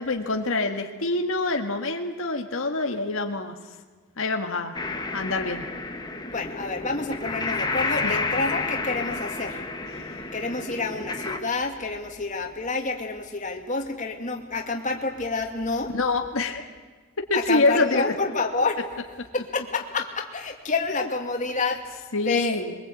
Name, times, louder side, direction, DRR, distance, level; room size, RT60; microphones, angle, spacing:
voice 1, 0.0-3.5 4.2-4.8 5.1-5.6 8.0-8.1 15.9-16.6 17.2-18.1 22.1-22.8, left 3 dB, 80° left, 3 dB, 1.7 m, -25 dB
sound 1, 4.7-11.4, left 3 dB, 20° left, 1.7 m, -30 dB
voice 2, 6.3-9.6 10.3-15.9 17.3-18.8 19.3-22.0 22.3-22.6, left 3 dB, 35° left, 2 dB, 2.4 m, -28 dB
23.0 x 22.5 x 8.4 m, 1.4 s
head